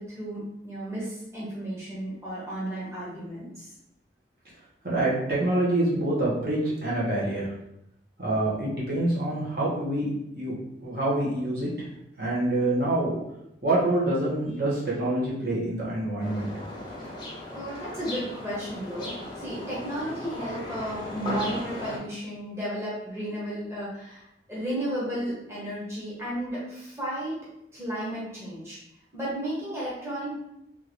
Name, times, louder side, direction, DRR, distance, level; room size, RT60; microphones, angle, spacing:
voice 1, 0.0-3.7 17.5-27.4 27.7-28.8 29.1-30.3, equal, 15° right, -7 dB, 1.0 m, -33 dB
voice 2, 4.8-7.5 8.2-10.1 10.4-10.5 10.8-11.7 12.2-13.2 13.6-16.5, right 1 dB, 55° right, -7 dB, 1.1 m, -26 dB
sound 1, 16.2-22.0, left 1 dB, 25° left, 0.7 m, -37 dB
3.7 x 2.5 x 3.1 m, 0.81 s
head